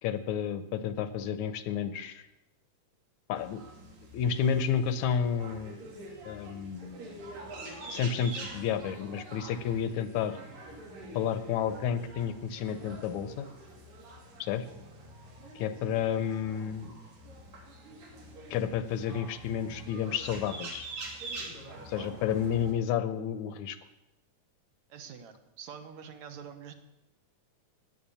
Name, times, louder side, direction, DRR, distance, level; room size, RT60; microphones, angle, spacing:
voice 1, 0.0-2.2 3.3-3.6 4.1-5.8 6.2-7.2 7.9-10.4 11.1-13.5 14.4-14.6 15.6-16.9 18.5-20.9 21.9-23.8, left 8 dB, 70° left, 12 dB, 2.0 m, -31 dB
sound 1, 3.3-22.7, right 2 dB, 85° right, 4.5 m, -45 dB
voice 2, 21.7-22.2 24.9-26.7, right 7 dB, 65° right, 7 dB, 2.3 m, -46 dB
16.5 x 10.0 x 7.1 m, 0.90 s
omnidirectional pair, 3.8 m